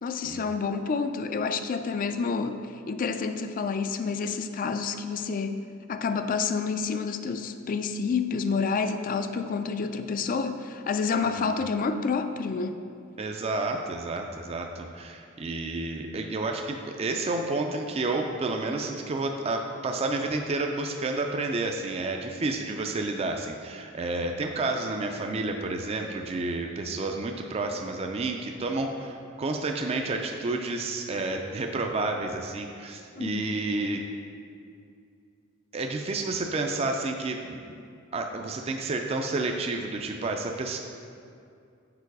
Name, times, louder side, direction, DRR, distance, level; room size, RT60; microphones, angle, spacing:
voice 1, 0.0-12.8 33.2-33.4, left 5 dB, 40° left, 9 dB, 0.3 m, -29 dB
voice 2, 11.2-11.5 13.2-34.0 35.7-37.8 38.1-40.8, right 2 dB, 30° right, 3 dB, 0.4 m, -30 dB
6.8 x 4.6 x 4.7 m, 2.4 s
head